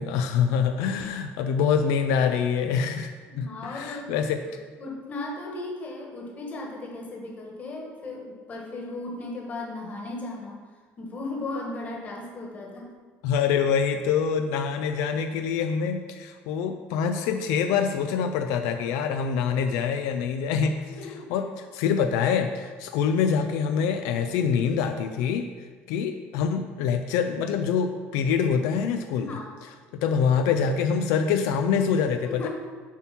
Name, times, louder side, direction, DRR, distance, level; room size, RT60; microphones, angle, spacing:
voice 1, 0.0-4.4 13.2-21.0 21.3-29.4 29.9-32.5, left 6 dB, 90° left, 7 dB, 0.5 m, -25 dB
voice 2, 3.3-4.1 4.4-10.6 11.0-12.9 20.9-21.3 29.1-29.6 32.2-32.5, left 2 dB, 30° left, -1 dB, 1.6 m, -36 dB
7.1 x 4.5 x 5.8 m, 1.5 s
cardioid pair, 145°, 5 cm